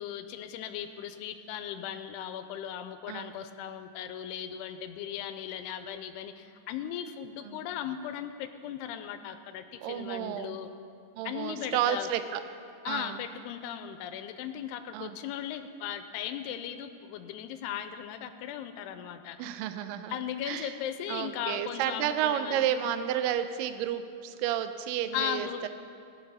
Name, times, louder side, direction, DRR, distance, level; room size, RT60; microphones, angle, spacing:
voice 1, 0.0-10.7 11.2-12.1 12.9-19.4 20.1-22.6 25.1-25.6, left 10 dB, 90° left, 8 dB, 2.6 m, -37 dB
voice 2, 3.1-3.4 7.4-7.6 9.8-10.6 11.2-12.4 12.9-13.2 14.9-15.2 19.4-20.8 21.1-25.7, right 10 dB, 85° right, 10 dB, 1.9 m, -31 dB
17.5 x 7.1 x 5.5 m, 2.4 s
omnidirectional pair, 4.6 m